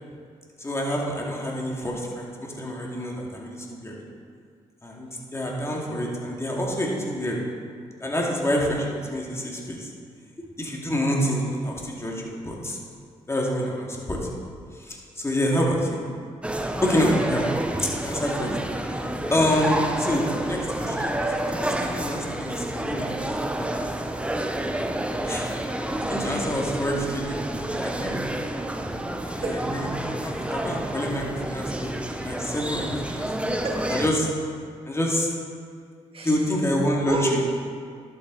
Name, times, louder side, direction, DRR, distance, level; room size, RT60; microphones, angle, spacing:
voice 1, 0.6-4.0 4.8-7.4 8.0-9.9 10.4-12.8 13.3-14.2 14.8-16.0 16.8-17.4 17.7-18.6 19.3-23.7 25.3-25.5 26.1-27.4 27.7-28.1 29.4-33.3 33.9-34.3 34.9-35.3 36.2-37.4, equal, 20° left, -2 dB, 2.3 m, -27 dB
sound 1, 16.4-34.1, right 1 dB, 10° right, 0.8 m, -29 dB
voice 2, 33.5-33.9 36.1-36.4 37.0-37.4, right 1 dB, 45° right, -1 dB, 2.2 m, -31 dB
11.5 x 7.9 x 4.0 m, 2.1 s
cardioid pair, 65°, 13 cm